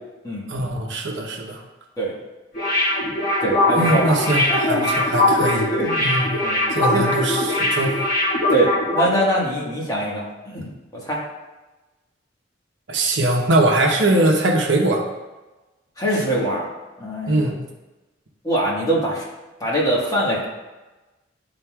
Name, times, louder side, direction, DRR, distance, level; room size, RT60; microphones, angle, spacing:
voice 1, 0.5-1.6 3.8-5.7 6.0-6.3 6.7-8.0 12.9-15.1 17.3-17.5, right 2 dB, 65° right, 1 dB, 0.9 m, -21 dB
sound 1, 2.5-9.2 9.5-9.6, left 1 dB, 50° left, 1.5 m, -21 dB
voice 2, 3.4-4.2 4.5-4.8 5.7-6.2 6.4-6.6 6.9-7.0 8.5-11.2 16.0-16.7 17.0-17.6 18.4-19.2 19.6-20.4, right 1 dB, 20° left, -5 dB, 1.4 m, -23 dB
11.0 x 3.9 x 2.3 m, 1.1 s
head